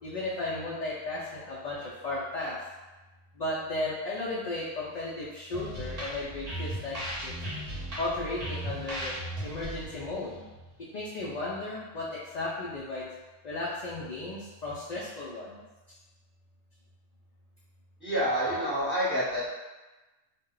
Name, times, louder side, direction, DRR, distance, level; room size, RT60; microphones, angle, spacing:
voice 1, 0.0-2.6 3.4-7.0 7.2-7.3 8.0-9.2 9.4-10.4 10.9-12.1 12.3-13.1 13.4-15.6, left 2 dB, 55° left, -7 dB, 0.5 m, -34 dB
sound 1, 5.5-11.1, right 1 dB, 40° right, 0.7 m, -37 dB
voice 2, 18.0-19.5, equal, 10° left, -8 dB, 0.8 m, -28 dB
2.1 x 2.1 x 3.7 m, 1.1 s
omnidirectional pair, 1.2 m